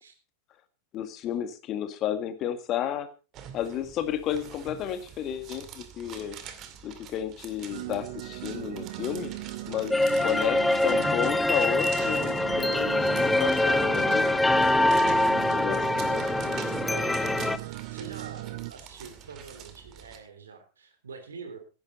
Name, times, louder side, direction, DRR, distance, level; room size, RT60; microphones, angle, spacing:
voice 1, 0.9-3.1 3.5-6.4 6.8-9.3 9.7-13.1 13.4-14.9 15.5-16.1, left 10 dB, 35° left, 10 dB, 1.8 m, -32 dB
sound 1, 3.3-20.2, right 8 dB, 35° right, 2.3 m, -46 dB
sound 2, 7.7-18.7, right 18 dB, 50° right, 0.7 m, -39 dB
sound 3, 9.9-17.6, left 1 dB, 5° left, 0.8 m, -24 dB
voice 2, 15.8-16.4 16.9-21.6, right 4 dB, 70° right, 8 dB, 3.5 m, -44 dB
16.0 x 11.5 x 4.2 m, 0.32 s
figure-of-eight pair, 90°, 0 cm